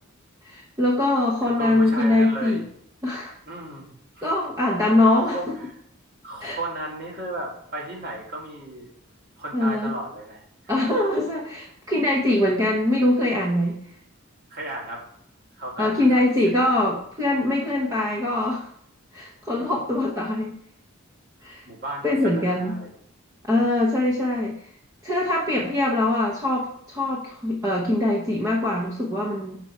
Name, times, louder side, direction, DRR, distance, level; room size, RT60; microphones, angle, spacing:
voice 1, 0.4-2.6 3.0-3.3 4.2-5.4 6.4-6.6 9.5-9.9 10.7-13.8 15.8-18.7 19.1-20.6 21.4-21.6 22.0-22.8 23.5-24.6 25.0-29.6, left 1 dB, 15° right, -3 dB, 0.7 m, -22 dB
voice 2, 1.4-2.6 3.5-4.5 4.9-5.8 6.2-8.9 9.4-10.4 10.8-10.9 14.5-15.0 15.6-16.9 21.4-22.9 23.5-23.7, right 2 dB, 45° right, -2 dB, 1.9 m, -35 dB
6.0 x 4.7 x 4.2 m, 0.70 s
head